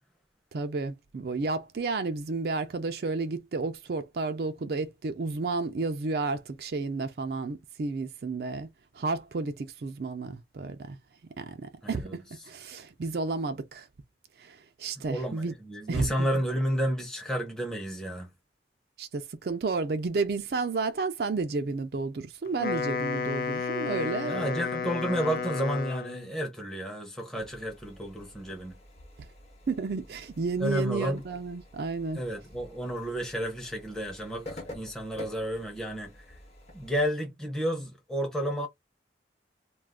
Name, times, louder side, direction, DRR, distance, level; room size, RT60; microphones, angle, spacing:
voice 1, 0.5-8.7 8.9-11.0 11.4-12.2 12.5-13.9 14.4-15.5 15.9-16.4 19.0-24.7 25.2-25.3 29.7-32.2, right 3 dB, 55° right, 0.4 m, -32 dB
voice 2, 11.8-12.2 15.1-18.3 24.2-28.7 30.6-31.2 32.1-36.1 36.7-38.7, equal, 5° left, 0.6 m, -31 dB
Wind instrument woodwind instrument, 22.5-26.3, left 4 dB, 50° left, 0.3 m, -32 dB
sound 1, 27.3-37.1, left 1 dB, 35° left, 0.8 m, -49 dB
2.4 x 2.3 x 3.5 m
head